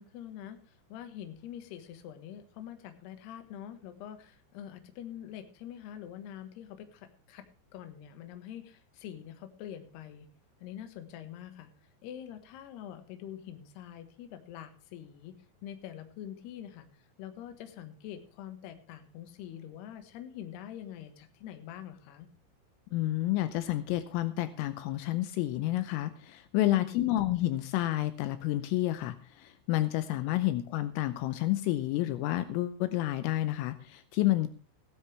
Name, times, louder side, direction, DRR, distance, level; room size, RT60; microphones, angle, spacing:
voice 1, 0.0-7.5 7.7-10.3 10.6-11.7 12.0-15.4 15.6-16.9 17.2-22.3 26.7-27.1 30.4-30.5, left 10 dB, 65° left, 8 dB, 3.0 m, -45 dB
voice 2, 22.9-34.5, left 15 dB, 80° left, 12 dB, 3.3 m, -30 dB
16.0 x 13.0 x 3.3 m, 0.38 s
omnidirectional pair, 6.0 m